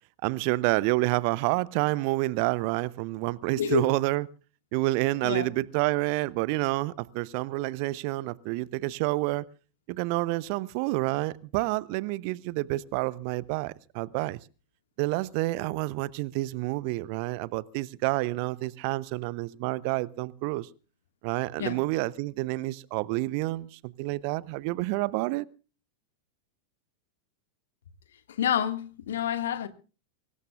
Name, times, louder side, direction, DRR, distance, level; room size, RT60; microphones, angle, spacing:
voice 1, 0.2-4.3 4.7-9.4 9.9-14.4 15.0-20.7 21.2-25.5, right 20 dB, 45° right, 0.7 m, -28 dB
voice 2, 3.5-3.9 5.2-5.5 21.6-21.8 28.3-29.7, left 9 dB, 60° left, 1.9 m, -28 dB
24.0 x 19.0 x 2.5 m
figure-of-eight pair, 90°, 0 cm